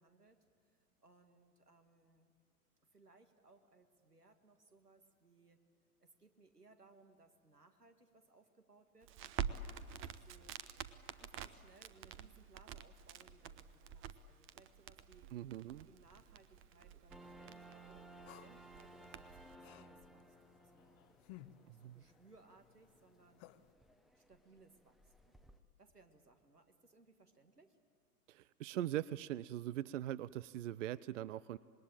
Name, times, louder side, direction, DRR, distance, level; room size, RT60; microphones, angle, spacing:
voice 1, 0.0-2.3 2.9-5.6 6.0-9.6 9.9-10.6 11.1-15.3 15.9-23.4 24.1-25.5 25.8-27.8, right 3 dB, 90° right, 6 dB, 2.0 m, -66 dB
Crackle, 9.0-19.6, right 8 dB, 25° right, 0.9 m, -48 dB
voice 2, 15.3-15.9 21.7-22.0 28.3-31.6, right 13 dB, 55° right, 19 dB, 0.6 m, -41 dB
sound 1, 17.1-25.6, right 1 dB, ahead, 0.8 m, -60 dB
sound 2, 18.3-23.7, left 14 dB, 35° left, 1.0 m, -61 dB
26.5 x 20.5 x 9.0 m, 2.4 s
figure-of-eight pair, 95°, 45 cm